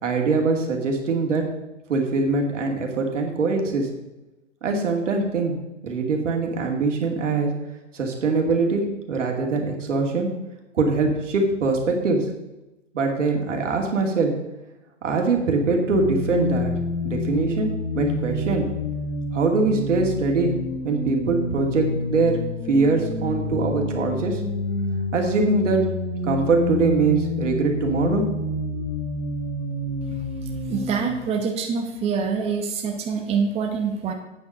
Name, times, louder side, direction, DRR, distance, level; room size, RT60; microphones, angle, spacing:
voice 1, 0.0-1.4 1.9-3.9 4.6-5.6 5.8-7.5 7.9-10.3 10.7-12.3 12.9-14.3 15.0-16.7 17.0-18.7 19.3-20.5 20.8-22.4 22.7-24.4 25.1-25.8 26.2-28.2, right 3 dB, 75° right, 2 dB, 2.6 m, -22 dB
sound 1, 15.9-31.2, left 2 dB, 80° left, 2.3 m, -28 dB
voice 2, 30.4-34.1, right 5 dB, 15° right, 3 dB, 1.0 m, -26 dB
8.8 x 7.6 x 5.6 m, 0.99 s
hypercardioid pair, 130°, 37 cm